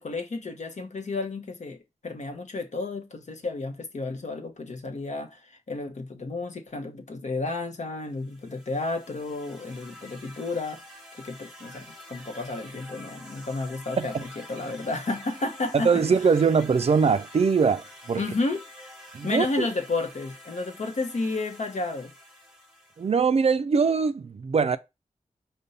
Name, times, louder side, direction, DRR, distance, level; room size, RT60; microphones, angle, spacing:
voice 1, 0.0-1.8 2.0-10.8 11.1-16.0 18.2-18.6 19.2-22.1, left 3 dB, 60° left, 0.8 m, -32 dB
sound 1, 8.1-23.2, equal, 5° right, 1.2 m, -47 dB
voice 2, 15.7-18.2 19.1-19.7 23.0-24.8, right 5 dB, 50° right, 0.4 m, -22 dB
5.2 x 2.2 x 4.0 m
wide cardioid pair, 70°, 14 cm